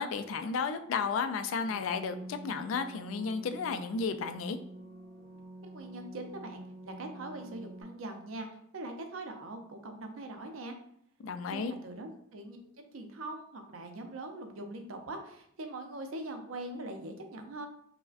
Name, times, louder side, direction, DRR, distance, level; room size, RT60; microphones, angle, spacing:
voice 1, 0.0-4.6 11.2-11.7, left 5 dB, 75° left, 9 dB, 0.3 m, -33 dB
sound 1, 1.6-7.8, right 2 dB, 20° right, 1.5 m, -47 dB
voice 2, 5.6-8.5 8.7-10.8 11.5-17.7, right 2 dB, 85° right, 5 dB, 0.5 m, -42 dB
4.7 x 2.1 x 2.5 m, 0.69 s
head